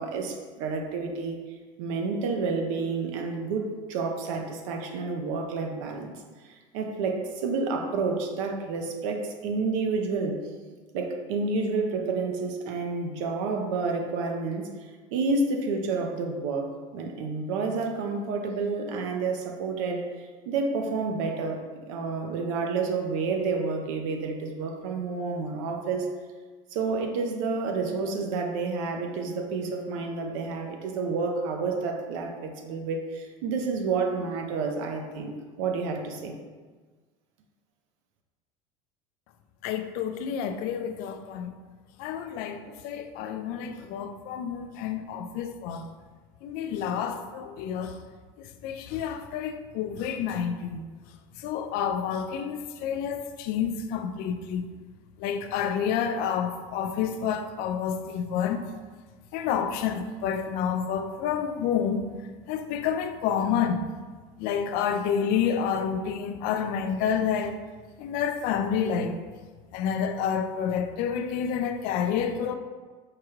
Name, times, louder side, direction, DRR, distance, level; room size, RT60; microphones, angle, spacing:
voice 1, 0.0-1.4 1.8-6.1 6.4-10.4 10.9-26.1 26.7-36.3, right 4 dB, 75° right, 0.6 m, -30 dB
voice 2, 39.6-41.5 42.0-45.8 46.4-48.0 48.4-50.8 51.4-54.7 55.2-58.6 59.3-62.1 62.5-63.9 64.4-67.6 68.0-69.2 69.7-72.5, left 7 dB, 60° left, 0.4 m, -29 dB
4.7 x 2.3 x 3.0 m
supercardioid pair, 100°, 17 cm